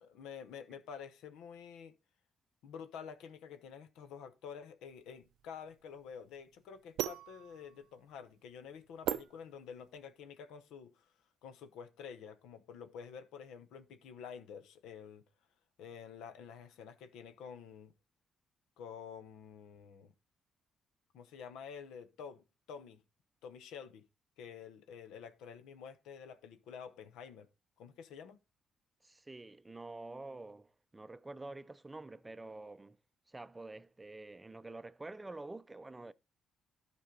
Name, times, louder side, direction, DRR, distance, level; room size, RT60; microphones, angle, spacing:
voice 1, 0.0-2.0 2.6-11.1 11.4-15.2 15.8-17.9 18.8-20.1 21.1-23.0 23.4-24.1 24.4-27.5 27.8-28.4, left 7 dB, 90° left, 0.9 m, -49 dB
sound 1, 4.9-10.1, right 12 dB, 85° right, 0.4 m, -41 dB
voice 2, 29.0-33.0 33.3-36.1, right 2 dB, 15° right, 0.5 m, -48 dB
12.0 x 5.2 x 3.8 m
cardioid pair, 90°, 0 cm